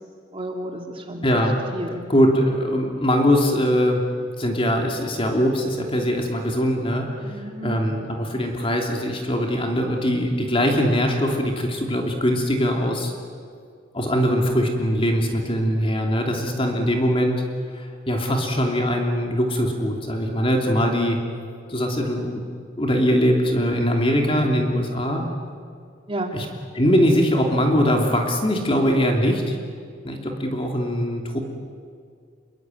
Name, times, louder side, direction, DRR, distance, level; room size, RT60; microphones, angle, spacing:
voice 1, 0.3-1.3 1.7-2.1 7.2-7.8 25.1-25.3 26.1-26.3, right 1 dB, 30° right, 3 dB, 2.5 m, -32 dB
voice 2, 1.2-1.5 2.1-4.0 4.4-13.1 13.9-17.4 17.7-21.2 21.7-22.4 22.8-25.3 26.3-26.5 26.7-29.6 30.0-31.4, equal, 30° left, 1 dB, 3.0 m, -22 dB
27.5 x 23.5 x 9.2 m, 2.2 s
head